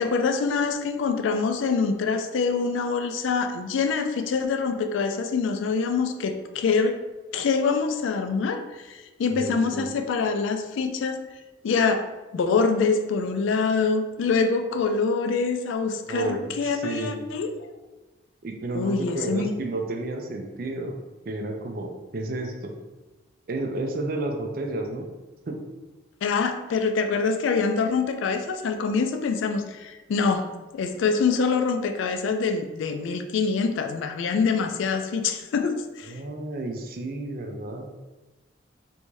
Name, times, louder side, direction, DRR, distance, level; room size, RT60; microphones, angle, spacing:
voice 1, 0.0-7.0 7.3-11.2 11.6-12.1 12.3-17.7 18.7-19.5 26.2-30.5 30.7-36.1, left 5 dB, 75° left, 7 dB, 0.3 m, -25 dB
voice 2, 9.3-9.9 16.1-17.2 18.4-21.0 21.3-22.7 23.5-25.1 25.5-25.6 36.1-37.9, right 2 dB, 45° right, 3 dB, 0.4 m, -31 dB
3.3 x 2.6 x 3.1 m, 1.2 s
head